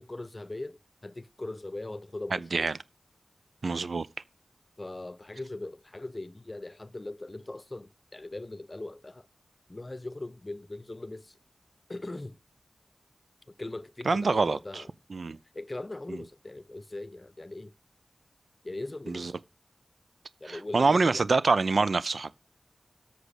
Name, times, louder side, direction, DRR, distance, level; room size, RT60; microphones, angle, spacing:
voice 1, 0.0-2.7 4.8-9.3 9.7-11.4 11.9-12.4 13.5-14.9 15.5-17.7 18.6-19.4 20.4-21.2, left 2 dB, 30° left, 0.7 m, -40 dB
voice 2, 3.6-4.1 14.1-14.8 15.1-15.4 16.1-16.2 19.1-19.3 20.5-22.3, right 4 dB, 70° right, 0.5 m, -26 dB
8.1 x 6.2 x 8.2 m
wide cardioid pair, 65°, 0 cm